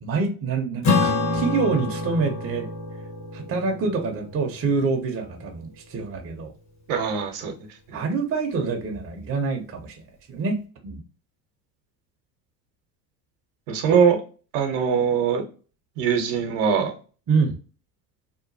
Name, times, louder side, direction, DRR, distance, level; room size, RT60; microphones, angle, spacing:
voice 1, 0.0-2.7 3.3-6.5 7.9-10.0 10.3-11.0 17.3-17.6, right 4 dB, 30° right, 3 dB, 0.7 m, -26 dB
Acoustic guitar / Strum, 0.8-5.6, left 3 dB, 35° left, 1.1 m, -27 dB
voice 2, 6.9-7.5 13.7-14.2 14.5-15.4 16.0-16.9, right 7 dB, 65° right, 4 dB, 0.9 m, -21 dB
3.0 x 2.2 x 2.6 m, 0.37 s
hypercardioid pair, 80°, 50 cm